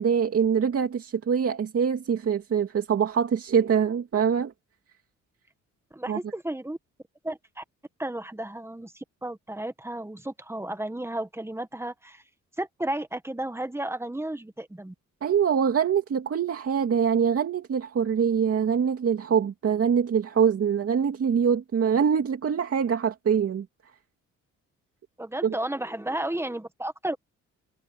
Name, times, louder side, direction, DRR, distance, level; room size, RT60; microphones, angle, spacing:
voice 1, 0.0-4.5 6.1-6.2 15.2-23.7 25.4-25.5, right 7 dB, 50° right, 2.5 m, -24 dB
voice 2, 5.9-6.8 7.2-7.6 8.0-12.2 12.6-14.9 25.2-27.2, right 1 dB, 10° right, 1.6 m, -33 dB
cardioid pair, 90°, 30 cm